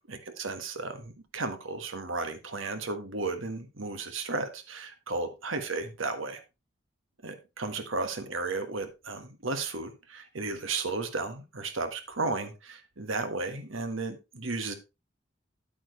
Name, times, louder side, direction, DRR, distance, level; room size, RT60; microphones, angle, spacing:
voice 1, 0.1-6.4 7.2-14.7, right 3 dB, 90° right, 8 dB, 1.5 m, -34 dB
9.1 x 8.7 x 3.2 m, 0.27 s
head